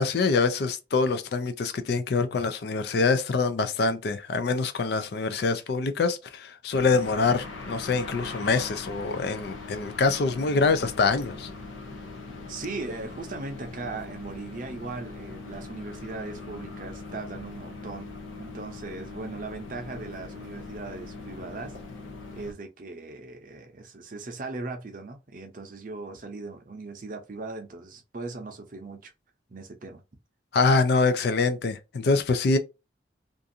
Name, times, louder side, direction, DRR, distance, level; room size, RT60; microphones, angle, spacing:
voice 1, 0.0-11.5 30.5-32.6, left 4 dB, 55° left, 0.4 m, -25 dB
sound 1, 6.7-22.5, left 3 dB, 85° left, 0.7 m, -41 dB
voice 2, 12.5-18.1 18.4-21.7 22.3-29.1 29.5-30.0, right 3 dB, 45° right, 0.6 m, -38 dB
2.5 x 2.4 x 2.6 m
head